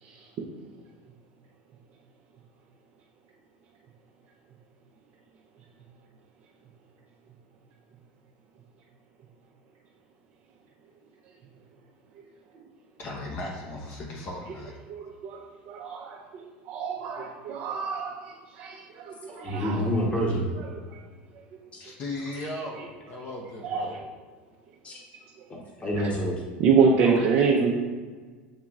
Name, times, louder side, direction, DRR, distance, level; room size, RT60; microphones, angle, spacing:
voice 1, 0.0-0.5 12.2-12.3 14.5-14.6 15.0-15.4 15.7-20.0 20.5-21.0 22.3-22.9 23.6-23.9 26.0-26.1 26.6-27.7, right 5 dB, 55° right, -2 dB, 0.6 m, -27 dB
voice 2, 13.0-14.7 21.8-24.0 27.0-27.7, left 1 dB, 40° left, -1 dB, 0.8 m, -37 dB
voice 3, 19.3-20.5 24.8-25.0 25.5-26.4, equal, 20° left, -2 dB, 1.1 m, -28 dB
7.4 x 2.9 x 2.4 m, 1.5 s
hypercardioid pair, 95°, 5 cm